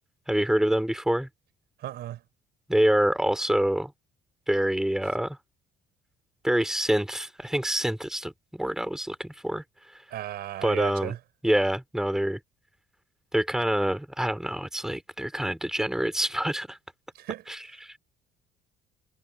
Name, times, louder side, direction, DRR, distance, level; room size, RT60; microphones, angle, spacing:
voice 1, 0.3-1.3 2.7-3.9 4.5-5.4 6.4-9.6 10.6-11.1 11.4-12.4 13.3-16.8 17.5-18.0, right 1 dB, 5° right, 3.6 m, -26 dB
voice 2, 1.8-2.2 10.1-11.2 17.1-17.4, right 13 dB, 70° right, 5.2 m, -35 dB
cardioid pair, 110°, 17 cm